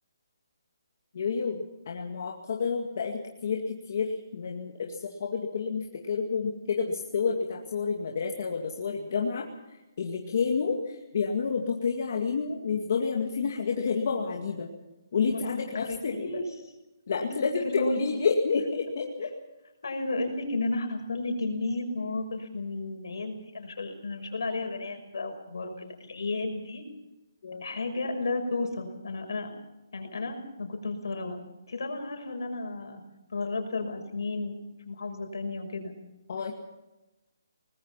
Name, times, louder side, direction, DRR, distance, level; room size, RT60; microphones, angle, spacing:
voice 1, 1.1-9.5 10.0-14.7 15.1-16.4 17.1-19.3 27.4-27.7 36.3-36.5, left 5 dB, 45° left, 1 dB, 2.2 m, -29 dB
voice 2, 15.8-16.4 17.2-17.3 17.6-18.0 19.8-26.8 27.6-29.5 29.9-31.4 31.7-33.0 33.3-34.5 34.8-36.0, left 2 dB, 70° left, 5 dB, 5.8 m, -33 dB
23.5 x 20.0 x 5.8 m, 1.0 s
hypercardioid pair, 175°, 2 cm